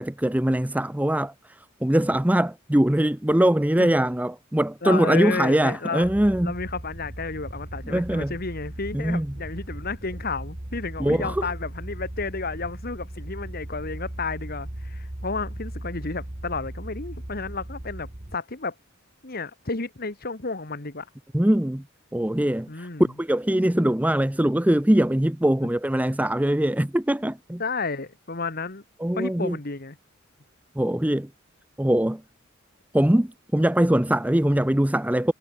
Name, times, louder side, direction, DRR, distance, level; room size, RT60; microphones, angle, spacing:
voice 1, 0.0-6.5 7.8-8.3 8.9-9.3 11.0-11.5 21.3-21.8 22.1-22.9 23.2-27.6 29.0-29.6 30.8-31.3 31.8-32.2 32.9-35.3, right 1 dB, 5° right, 0.6 m, -22 dB
voice 2, 4.8-6.1 6.4-18.7 19.2-21.1 22.7-23.1 27.6-28.8 29.1-30.0, left 4 dB, 45° left, 1.7 m, -32 dB
sound 1, 6.0-18.4, right 1 dB, 30° right, 1.5 m, -37 dB
head